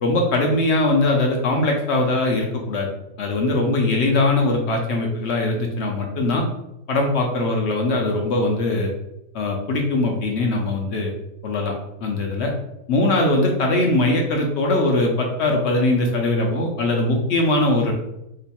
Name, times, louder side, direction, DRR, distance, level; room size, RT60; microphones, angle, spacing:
voice 1, 0.0-2.9 3.2-6.5 6.9-8.9 9.3-11.1 11.4-11.7 12.0-12.5 12.9-17.9, left 2 dB, 65° left, 1 dB, 0.7 m, -21 dB
3.0 x 2.2 x 4.1 m, 0.87 s
omnidirectional pair, 1.6 m